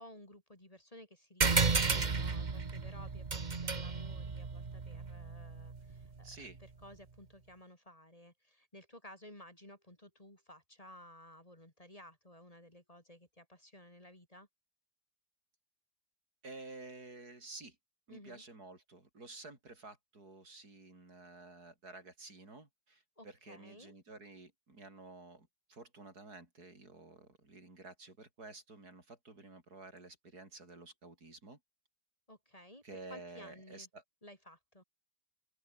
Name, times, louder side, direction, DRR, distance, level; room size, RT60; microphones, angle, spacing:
voice 1, 0.0-14.5 18.1-18.4 23.2-23.9 32.3-33.9 34.2-34.8, left 1 dB, 20° left, 3.9 m, -55 dB
sound 1, 1.4-6.3, right 4 dB, 30° right, 1.3 m, -33 dB
voice 2, 6.2-6.6 16.4-17.8 18.1-31.6 32.8-34.0, right 3 dB, 70° right, 5.3 m, -52 dB
open air
omnidirectional pair, 1.7 m